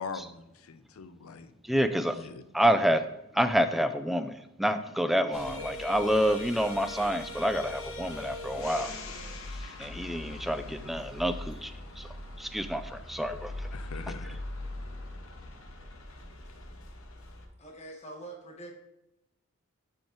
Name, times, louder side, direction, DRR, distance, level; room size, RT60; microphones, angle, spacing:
voice 1, 0.0-1.5 2.1-2.4 13.7-14.4, left 5 dB, 85° left, 11 dB, 0.6 m, -41 dB
voice 2, 1.6-2.2 2.5-3.0 3.3-9.0 9.5-12.1 12.4-13.7, equal, ahead, 9 dB, 0.3 m, -28 dB
sound 1, 5.3-17.5, left 2 dB, 70° left, 1.0 m, -41 dB
voice 3, 17.6-18.7, right 2 dB, 30° left, 1 dB, 1.2 m, -44 dB
11.5 x 3.9 x 3.8 m, 0.87 s
head